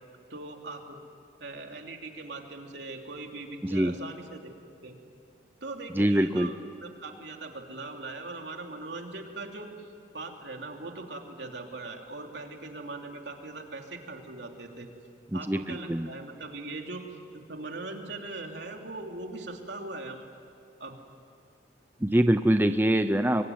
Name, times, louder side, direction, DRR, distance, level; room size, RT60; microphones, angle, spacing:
voice 1, 0.3-1.0 1.4-4.5 4.8-5.0 5.6-14.9 15.3-17.1 17.3-20.3 20.8-21.0, right 2 dB, 75° right, 2 dB, 3.0 m, -40 dB
voice 2, 3.6-3.9 5.9-6.5 15.3-16.1 22.0-23.4, right 1 dB, 10° right, 9 dB, 0.6 m, -24 dB
24.5 x 23.5 x 9.4 m, 2.3 s
head